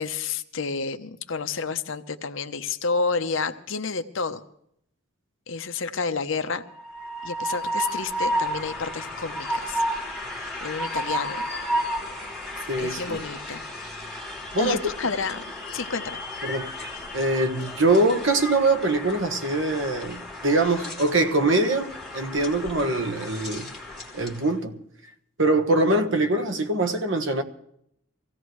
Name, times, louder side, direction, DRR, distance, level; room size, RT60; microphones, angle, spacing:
voice 1, 0.0-4.4 5.5-6.6 7.2-9.8 10.6-11.5 12.8-13.6 14.6-15.4 15.7-16.2, left 4 dB, 60° left, 0.8 m, -30 dB
Train, 6.7-24.5, equal, ahead, 3.4 m, -33 dB
voice 2, 12.7-13.2 14.5-14.8 16.4-16.7 17.1-23.7 24.1-24.8 25.4-27.4, right 2 dB, 55° right, 1.3 m, -23 dB
24.0 x 16.5 x 3.2 m
head